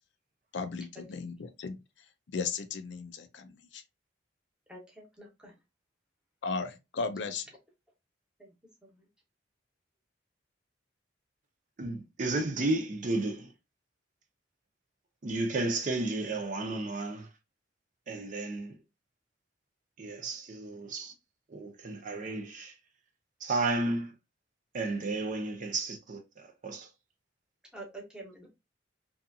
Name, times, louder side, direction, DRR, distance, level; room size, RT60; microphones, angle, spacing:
voice 1, 0.5-1.8 2.3-3.8 6.4-7.5, left 4 dB, 70° left, 0.4 m, -36 dB
voice 2, 4.7-5.5 27.7-28.5, right 2 dB, 5° right, 0.8 m, -47 dB
voice 3, 11.8-13.5 15.2-17.3 18.1-18.7 20.0-21.1 21.5-22.7 23.4-24.1 24.7-26.2 26.6-26.9, right 2 dB, 45° right, 0.5 m, -32 dB
2.7 x 2.4 x 2.6 m
head